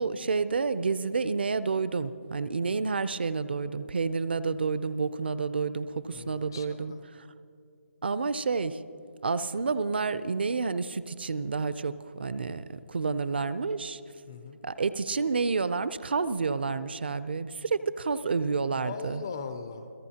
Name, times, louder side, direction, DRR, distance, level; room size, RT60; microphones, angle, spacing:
voice 1, 0.0-6.9 8.0-8.8 9.2-14.0 14.6-19.2, right 4 dB, 45° right, 15 dB, 0.5 m, -29 dB
voice 2, 6.1-7.0 14.3-14.6 18.7-19.9, left 5 dB, 15° left, 9 dB, 0.3 m, -40 dB
29.0 x 16.5 x 2.8 m, 2.5 s
hypercardioid pair, 175°, 8 cm